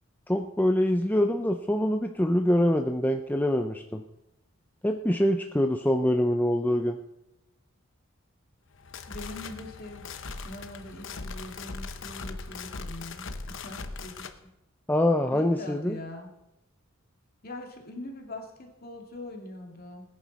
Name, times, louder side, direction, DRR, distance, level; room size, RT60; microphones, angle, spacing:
voice 1, 0.3-4.0 4.8-7.0 14.9-16.0, left 1 dB, 10° left, 4 dB, 0.5 m, -25 dB
sound 1, 8.7-14.4, left 4 dB, 60° left, 0.9 m, -39 dB
voice 2, 9.1-14.5 15.3-16.3 17.4-20.0, left 2 dB, 45° left, 2 dB, 2.3 m, -42 dB
19.5 x 10.0 x 4.1 m, 0.93 s
head